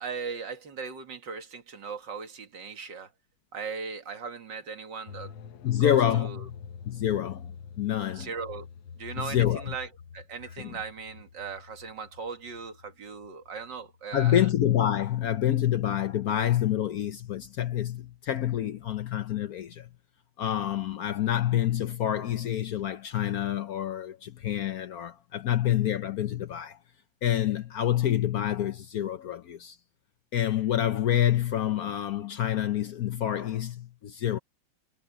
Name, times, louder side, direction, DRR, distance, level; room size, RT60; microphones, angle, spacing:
voice 1, 0.0-3.1 3.5-5.3 5.7-6.5 8.1-8.7 8.9-14.5, right 5 dB, 70° right, 2.6 m, -38 dB
sound 1, 5.1-14.9 15.2-15.3, left 6 dB, 85° left, 1.8 m, -46 dB
voice 2, 5.6-6.6 6.9-7.5 7.8-8.3 9.2-9.7 10.6-10.8 14.1-19.9 20.4-26.8 27.2-29.8 30.3-34.4, left 11 dB, 65° left, 1.0 m, -27 dB
omnidirectional pair, 2.1 m